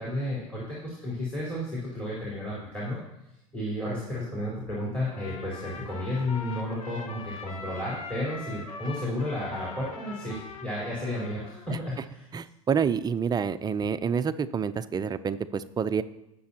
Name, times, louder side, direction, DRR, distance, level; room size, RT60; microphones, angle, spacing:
voice 1, 0.0-3.0 3.5-12.3, left 1 dB, 5° left, -7 dB, 4.4 m, -32 dB
Trumpet, 5.1-11.7, left 4 dB, 80° left, 1.5 m, -42 dB
voice 2, 12.3-16.0, right 6 dB, 20° right, 12 dB, 0.6 m, -28 dB
19.0 x 7.0 x 2.9 m, 0.91 s
hypercardioid pair, 100°, 18 cm